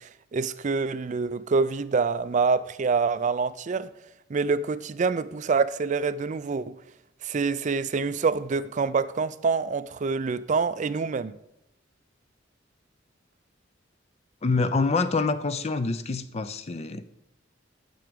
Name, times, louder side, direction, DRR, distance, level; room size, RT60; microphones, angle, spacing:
voice 1, 0.0-3.9 4.3-6.8 7.2-11.3, right 4 dB, 40° right, 0.4 m, -26 dB
voice 2, 14.4-17.1, left 3 dB, 35° left, 0.5 m, -26 dB
9.2 x 7.0 x 5.1 m
head